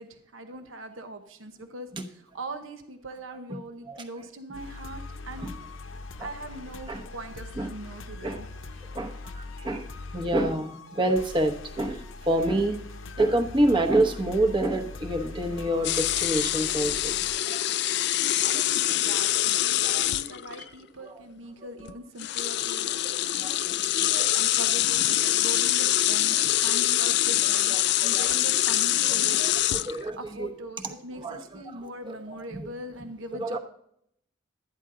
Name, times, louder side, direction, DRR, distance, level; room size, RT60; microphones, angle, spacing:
voice 1, 0.0-5.5 6.2-8.5 8.7-8.8 18.4-23.3 23.9-29.8 30.2-33.6, right 1 dB, 80° right, 8 dB, 0.9 m, -41 dB
sound 1, 4.5-17.4, left 3 dB, 80° left, 0.8 m, -41 dB
voice 2, 8.9-12.8 13.2-17.6 19.9-20.0 21.0-21.1 23.4-24.3 28.0-28.3 29.0-30.5 31.2-31.4 31.7-32.7 33.4-33.6, right 1 dB, 25° right, 4 dB, 1.0 m, -28 dB
sound 2, 15.8-20.6 21.8-21.9 22.2-30.1, left 14 dB, 55° left, 0.3 m, -25 dB
12.5 x 9.8 x 3.8 m, 0.71 s
head